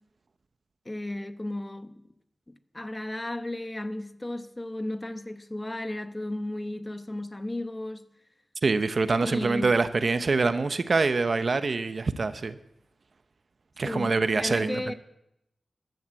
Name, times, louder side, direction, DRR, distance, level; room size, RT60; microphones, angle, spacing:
voice 1, 0.8-2.0 2.5-8.0 9.2-9.7 13.8-14.9, left 1 dB, 20° left, 1.0 m, -34 dB
voice 2, 8.6-12.6 13.8-14.9, right 3 dB, 55° right, 0.9 m, -25 dB
14.0 x 12.0 x 7.7 m
wide cardioid pair, 75°, 0 cm